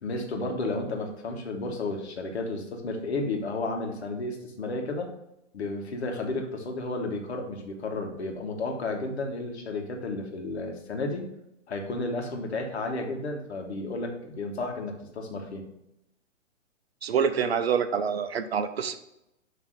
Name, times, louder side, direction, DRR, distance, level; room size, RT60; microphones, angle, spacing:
voice 1, 0.0-5.1 5.5-11.3 11.7-15.7, left 2 dB, 55° left, 2 dB, 1.6 m, -32 dB
voice 2, 17.0-19.0, right 7 dB, 50° right, 10 dB, 0.7 m, -26 dB
7.3 x 3.3 x 6.3 m, 0.86 s
figure-of-eight pair, 115°, 38 cm